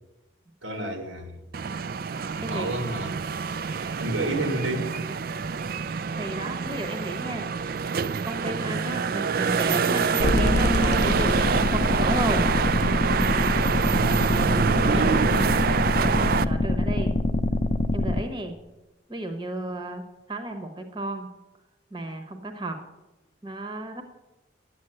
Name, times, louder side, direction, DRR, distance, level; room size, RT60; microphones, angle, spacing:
voice 1, 0.6-1.3 2.3-3.2 4.0-4.9 5.6-5.8 8.5-8.8 14.1-15.6, right 1 dB, 85° right, 5 dB, 2.2 m, -31 dB
sound 1, 1.5-16.4, right 6 dB, 45° right, 0.3 m, -26 dB
voice 2, 2.4-2.7 6.1-7.5 8.2-12.4 14.6-15.2 15.6-17.1 17.9-18.6 19.1-21.3 21.9-22.8 23.4-24.0, right 1 dB, 25° right, 6 dB, 1.0 m, -33 dB
sound 2, 10.2-18.2, left 2 dB, 35° left, 0.5 m, -25 dB
10.5 x 8.8 x 7.7 m, 1.0 s
head